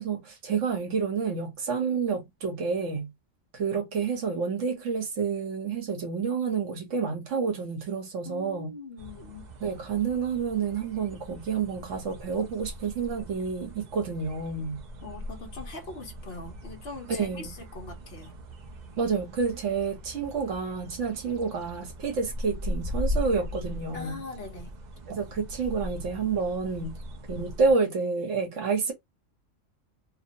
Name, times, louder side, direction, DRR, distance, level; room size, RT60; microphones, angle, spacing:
voice 1, 0.0-3.1 3.5-8.7 9.6-14.8 17.1-17.5 19.0-24.2 25.1-27.0 27.3-28.9, right 5 dB, 70° right, 1.2 m, -29 dB
voice 2, 8.2-9.5 15.0-18.3 23.9-24.7, left 3 dB, 55° left, 1.0 m, -41 dB
sound 1, 9.0-27.7, left 1 dB, 50° right, 0.5 m, -39 dB
2.8 x 2.0 x 2.6 m
omnidirectional pair, 1.3 m